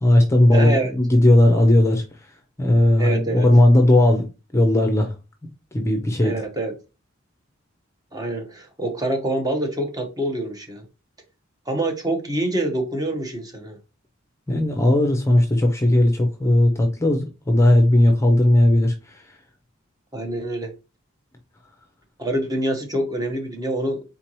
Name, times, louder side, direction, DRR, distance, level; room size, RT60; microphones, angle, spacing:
voice 1, 0.0-2.0 2.6-4.3 4.5-5.1 5.7-6.3 14.5-18.9, left 1 dB, 15° left, 0.6 m, -17 dB
voice 2, 0.5-0.9 3.0-3.5 6.2-6.7 8.1-10.8 11.7-13.8 20.1-20.7 22.2-24.0, right 1 dB, 20° right, 1.1 m, -26 dB
4.5 x 3.7 x 3.0 m
head